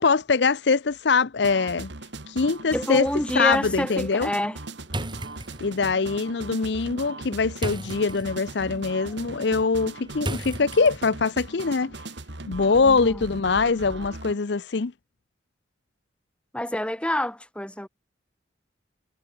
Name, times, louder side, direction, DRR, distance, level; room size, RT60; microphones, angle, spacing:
voice 1, 0.0-1.9 2.3-3.1 3.3-4.3 5.6-12.0 12.5-14.9, left 4 dB, 65° left, 0.6 m, -23 dB
sound 1, 1.4-14.4, right 2 dB, 70° right, 2.4 m, -39 dB
voice 2, 2.7-4.6 12.8-13.3 16.5-17.9, left 1 dB, 5° left, 2.0 m, -27 dB
sound 2, 4.9-11.4, right 1 dB, 25° right, 3.1 m, -37 dB
head